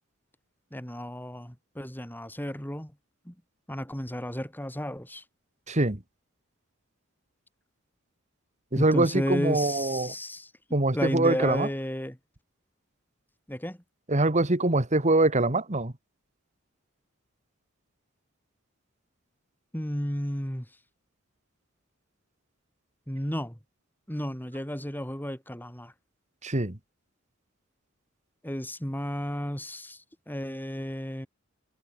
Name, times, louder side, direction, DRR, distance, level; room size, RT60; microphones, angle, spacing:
voice 1, 0.7-2.9 3.3-3.4 3.7-5.2 8.7-10.5 10.9-12.2 13.5-13.8 19.7-20.7 23.1-23.6 24.1-25.9 28.4-31.3, equal, 10° left, 5.5 m, -33 dB
voice 2, 5.7-6.0 8.7-10.1 10.7-11.7 14.1-15.9 26.4-26.8, right 2 dB, 35° right, 2.0 m, -24 dB
head